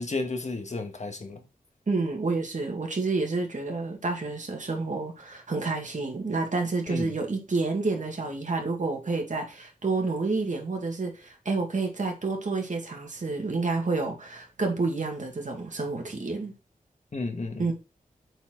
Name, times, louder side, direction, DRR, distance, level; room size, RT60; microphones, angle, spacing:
voice 1, 0.0-1.5 6.9-7.1 17.1-17.7, left 3 dB, 50° left, 1.6 m, -33 dB
voice 2, 1.9-16.5 17.6-17.7, right 3 dB, 60° right, 2.3 m, -29 dB
8.0 x 4.5 x 3.9 m
wide cardioid pair, 70°, 15 cm